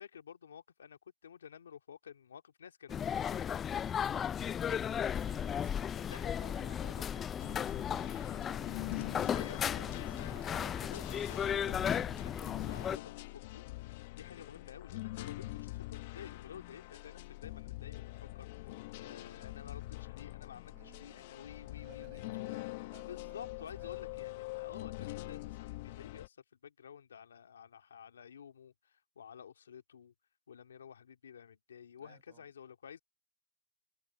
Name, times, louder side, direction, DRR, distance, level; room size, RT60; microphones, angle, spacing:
voice 1, 0.0-3.6 5.9-7.2 9.3-22.2 23.1-30.1 30.5-33.0, left 8 dB, 85° left, 2.0 m, -52 dB
sound 1, 2.9-13.0, left 8 dB, 20° left, 0.4 m, -35 dB
voice 2, 5.1-9.0 9.9-10.8 20.7-21.3 21.7-23.9 32.0-32.5, right 27 dB, 50° right, 5.5 m, -62 dB
sound 2, 7.4-26.3, left 20 dB, 55° left, 1.0 m, -44 dB
hypercardioid pair, 125°, 0 cm